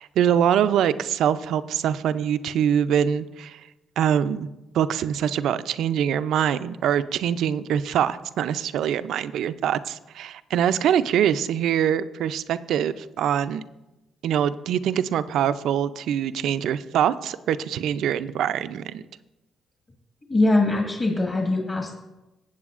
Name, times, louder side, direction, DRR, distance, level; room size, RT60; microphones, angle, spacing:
voice 1, 0.0-3.6 4.0-4.5 4.7-13.6 14.2-19.0, right 9 dB, 80° right, 13 dB, 0.4 m, -24 dB
voice 2, 20.3-21.9, left 2 dB, 30° left, 0 dB, 1.4 m, -22 dB
15.5 x 8.0 x 2.4 m, 1.0 s
cardioid pair, 90°, 0 cm